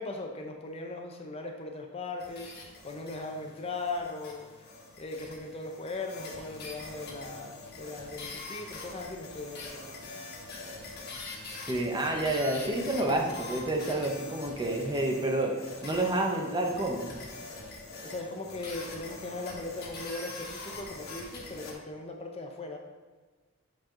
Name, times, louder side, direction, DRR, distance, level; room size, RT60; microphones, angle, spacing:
voice 1, 0.0-2.5 2.8-9.9 18.0-22.8, left 2 dB, 30° left, 2 dB, 0.6 m, -39 dB
sound 1, 2.2-21.7, left 3 dB, 50° left, 1.4 m, -44 dB
voice 2, 11.6-17.1, right 1 dB, 20° right, 1 dB, 0.7 m, -29 dB
7.6 x 4.5 x 3.7 m, 1.3 s
head